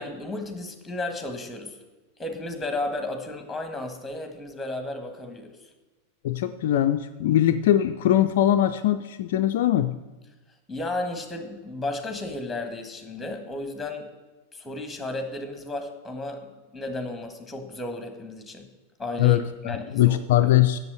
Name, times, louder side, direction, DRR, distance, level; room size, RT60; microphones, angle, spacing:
voice 1, 0.0-1.8 2.2-5.7 10.7-14.1 14.5-18.7 19.0-19.4 19.6-20.5, left 2 dB, 10° left, 7 dB, 1.6 m, -33 dB
voice 2, 6.2-10.0 19.2-20.8, left 12 dB, 55° left, 8 dB, 0.4 m, -21 dB
7.9 x 7.0 x 7.9 m, 1.2 s
figure-of-eight pair, 90°, 0 cm